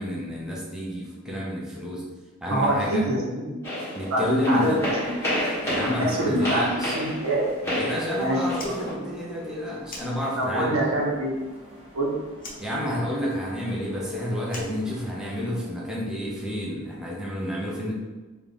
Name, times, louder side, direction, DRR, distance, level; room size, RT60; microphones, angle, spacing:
voice 1, 0.0-2.0 2.4-3.0 3.9-4.7 5.6-7.0 7.6-10.8 12.6-17.9, equal, 5° right, -5 dB, 0.7 m, -29 dB
voice 2, 2.5-3.6 4.1-4.2 4.5-4.7 5.0-5.2 6.0-7.5 8.2-8.4 8.6-8.9 10.4-11.3 11.9-12.1, right 1 dB, 70° right, -3 dB, 0.9 m, -25 dB
sound 1, 3.6-8.9, equal, 10° left, 1.3 m, -30 dB
sound 2, 4.7-15.6, right 1 dB, 25° right, 1.1 m, -44 dB
Fire, 8.5-10.7 11.0-12.0 12.3-15.5, left 2 dB, 40° left, 0.8 m, -44 dB
4.2 x 2.5 x 3.5 m, 1.2 s
head